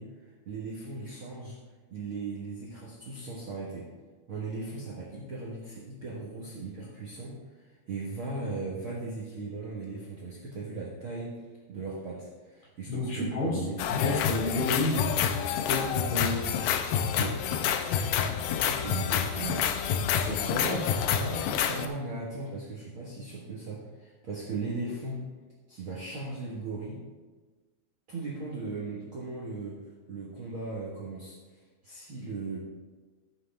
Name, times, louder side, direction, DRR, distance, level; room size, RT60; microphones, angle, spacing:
voice 1, 0.0-1.6 1.9-3.9 4.3-11.4 11.7-14.0 17.1-17.4 18.6-19.9 20.7-20.8 21.1-25.2 25.7-27.0 28.1-29.8 30.1-32.6, right 3 dB, 85° right, -5 dB, 1.1 m, -38 dB
voice 2, 12.9-15.1 15.7-16.6 20.2-20.8, left 2 dB, 40° left, -3 dB, 2.9 m, -31 dB
sound 1, 13.8-21.9, left 8 dB, 80° left, 2.3 m, -28 dB
14.0 x 7.6 x 3.5 m, 1.3 s
omnidirectional pair, 4.9 m